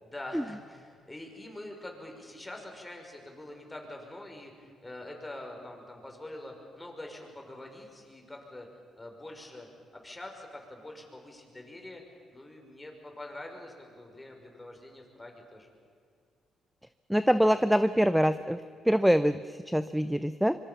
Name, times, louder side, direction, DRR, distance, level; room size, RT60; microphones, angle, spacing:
voice 1, 0.0-8.7 9.0-15.7, left 1 dB, 15° left, 2 dB, 5.9 m, -45 dB
voice 2, 17.1-20.6, equal, ahead, 13 dB, 0.7 m, -25 dB
25.0 x 24.0 x 7.3 m, 2.2 s
cardioid pair, 90°, 0 cm